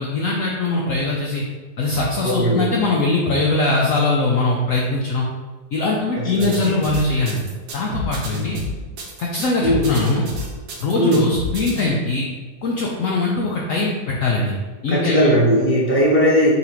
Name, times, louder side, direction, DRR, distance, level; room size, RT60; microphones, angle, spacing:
voice 1, 0.0-1.4 1.8-5.3 5.7-7.4 7.7-8.6 9.2-10.2 10.8-12.2 12.6-14.5 14.8-15.3, left 2 dB, 65° left, -2 dB, 0.8 m, -21 dB
voice 2, 2.2-2.7 6.1-6.7 9.6-9.9 11.0-11.2 14.9-16.5, equal, 10° left, -6 dB, 0.9 m, -18 dB
sound 1, 6.4-11.9, equal, 85° right, 1.4 m, -29 dB
4.1 x 2.8 x 4.3 m, 1.3 s
omnidirectional pair, 1.8 m